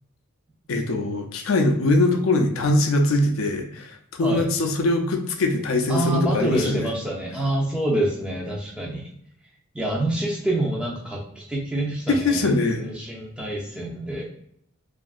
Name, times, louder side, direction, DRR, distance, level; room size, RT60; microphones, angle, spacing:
voice 1, 0.7-6.9 12.1-12.8, left 2 dB, 75° left, 3 dB, 0.4 m, -22 dB
voice 2, 5.9-9.1 9.7-14.3, right 1 dB, 5° right, -3 dB, 0.5 m, -27 dB
2.7 x 2.4 x 2.3 m, 0.70 s
head